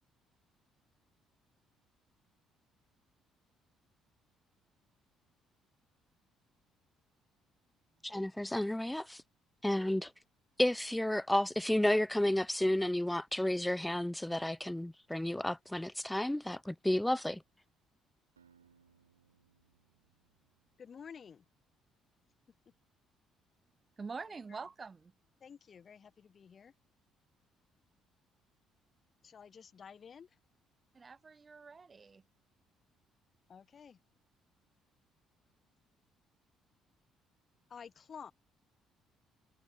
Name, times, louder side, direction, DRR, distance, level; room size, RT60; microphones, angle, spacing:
voice 1, 8.0-9.2 9.6-10.1 10.6-17.4, left 1 dB, 5° left, 0.6 m, -32 dB
Acoustic guitar, 18.4-21.4, right 7 dB, 80° right, 3.3 m, -69 dB
voice 2, 20.8-21.5 24.5-24.6 25.4-26.7 29.2-30.3 33.5-34.0 37.7-38.3, left 7 dB, 40° left, 2.5 m, -51 dB
voice 3, 24.0-25.1 30.9-32.2, right 4 dB, 30° right, 0.9 m, -46 dB
figure-of-eight pair, 45°, 0 cm